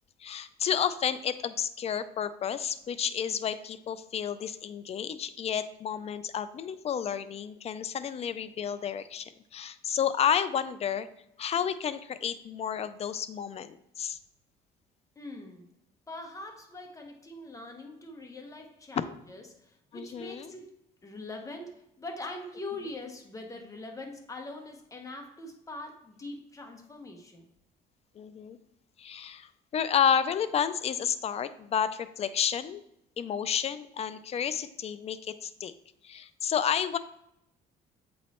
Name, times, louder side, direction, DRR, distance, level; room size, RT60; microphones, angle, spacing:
voice 1, 0.2-11.1 11.4-14.2 19.0-19.1 19.9-20.5 28.2-28.6 29.0-32.8 33.2-35.7 36.0-37.0, left 8 dB, 40° left, 13 dB, 0.4 m, -31 dB
voice 2, 15.2-15.7 16.1-27.4, left 2 dB, 20° left, 3 dB, 1.1 m, -43 dB
7.7 x 3.2 x 4.2 m, 0.79 s
cardioid pair, 110°, 17 cm